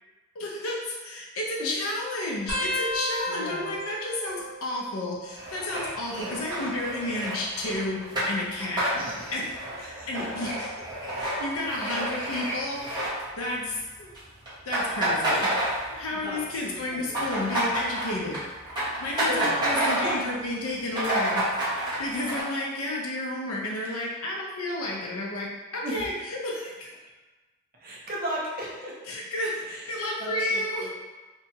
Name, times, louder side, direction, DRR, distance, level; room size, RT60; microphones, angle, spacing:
voice 1, 0.3-8.9 9.3-9.4 9.8-10.5 11.2-12.8 13.4-14.1 14.7-15.5 15.9-18.4 19.0-21.4 22.0-25.5 25.7-27.0 29.1-30.9, left 1 dB, 80° left, -2 dB, 0.6 m, -31 dB
sound 1, 2.5-5.7 5.9-6.5 7.5-9.0 9.6-10.0 11.2-11.6 13.1-13.2, left 1 dB, 90° right, 0.8 m, -36 dB
voice 2, 3.3-3.8 6.1-6.5 8.9-9.3 9.8-10.4 15.3-15.7 16.1-17.2 19.2-20.1 23.8-23.9 25.8-26.1 27.8-29.0 29.6-30.9, right 1 dB, 45° right, -4 dB, 0.7 m, -37 dB
sound 2, 5.3-13.7 14.0-14.2 14.4-16.2 16.5-20.3 20.6-20.7 20.9-22.4, right 1 dB, 20° right, 0.9 m, -29 dB
2.8 x 2.3 x 2.8 m, 1.2 s
head